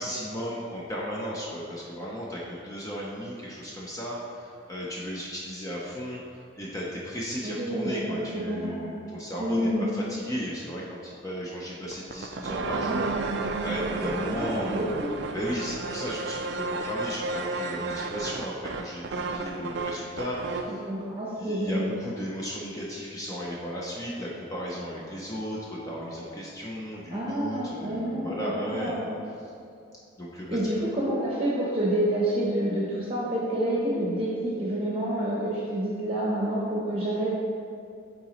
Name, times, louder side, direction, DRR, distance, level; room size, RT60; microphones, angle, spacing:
voice 1, 0.0-20.9 21.4-29.0 30.2-30.6, equal, 15° left, -5 dB, 0.6 m, -35 dB
voice 2, 7.4-8.9 9.4-9.9 14.3-15.1 20.8-21.9 27.1-29.0 30.5-37.3, right 1 dB, 30° right, -6 dB, 0.8 m, -28 dB
sound 1, 11.9-20.8, right 3 dB, 55° right, 0.3 m, -32 dB
8.6 x 4.0 x 3.0 m, 2.5 s
head